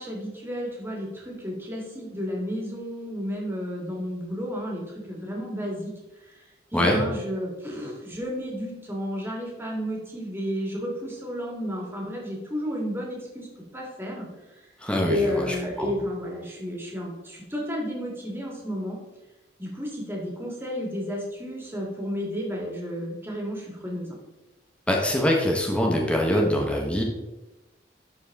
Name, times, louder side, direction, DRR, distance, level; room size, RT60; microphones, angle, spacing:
voice 1, 0.0-4.8 5.1-5.9 6.7-13.5 13.7-14.3 15.1-19.0 19.6-24.2, equal, 15° right, -2 dB, 1.9 m, -32 dB
voice 2, 14.8-15.4 15.8-15.9 24.9-27.0, equal, 5° left, 0 dB, 1.1 m, -23 dB
12.5 x 4.1 x 3.6 m, 1.1 s
head